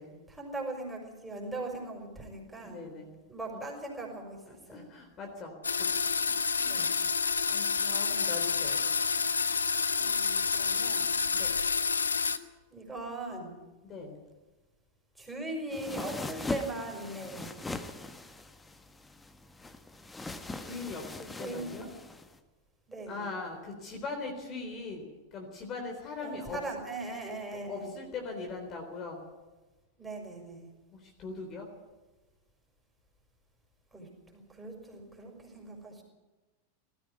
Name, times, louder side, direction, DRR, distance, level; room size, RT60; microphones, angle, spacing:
voice 1, 0.3-3.0 3.3-4.9 6.6-6.9 10.0-11.1 12.7-13.6 15.1-17.5 21.4-21.9 22.9-23.4 26.2-28.0 30.0-30.7 33.9-36.0, right 2 dB, 5° right, 0 dB, 5.9 m, -40 dB
voice 2, 2.6-3.2 4.7-5.9 6.3-6.4 7.5-8.8 11.3-11.5 13.8-14.2 20.6-21.9 23.1-25.0 25.3-26.6 27.7-29.2 30.9-31.7, left 3 dB, 30° left, 2 dB, 3.8 m, -40 dB
sound 1, 5.6-12.4, left 5 dB, 75° left, 0.9 m, -29 dB
sound 2, 15.7-22.4, left 2 dB, 10° left, 1.3 m, -41 dB
19.0 x 15.0 x 9.6 m, 1.2 s
figure-of-eight pair, 90°, 0 cm